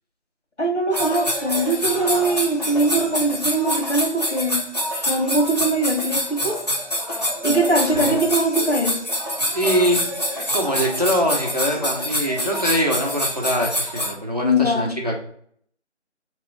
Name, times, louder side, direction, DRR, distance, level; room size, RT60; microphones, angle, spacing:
voice 1, 0.6-4.6 5.0-6.6 7.4-9.0 14.4-14.9, right 1 dB, 70° left, 1 dB, 1.5 m, -21 dB
sound 1, 0.9-14.1, equal, 35° left, 0.7 m, -26 dB
voice 2, 9.5-15.1, equal, 35° right, 0 dB, 0.6 m, -23 dB
4.2 x 3.0 x 3.3 m, 0.62 s
figure-of-eight pair, 170°, 36 cm